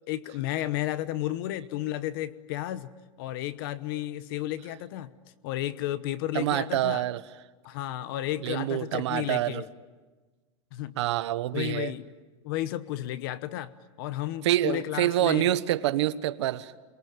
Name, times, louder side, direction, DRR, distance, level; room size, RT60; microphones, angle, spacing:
voice 1, 0.1-2.9 3.2-5.1 5.4-7.0 7.6-9.7 10.7-11.0 11.5-12.0 12.4-13.7 14.0-15.5, left 14 dB, 45° left, 1.0 m, -32 dB
voice 2, 6.3-7.2 8.4-9.6 11.0-11.9 14.4-16.7, right 14 dB, 65° right, 1.2 m, -26 dB
29.0 x 23.0 x 9.0 m
supercardioid pair, 160°, 16 cm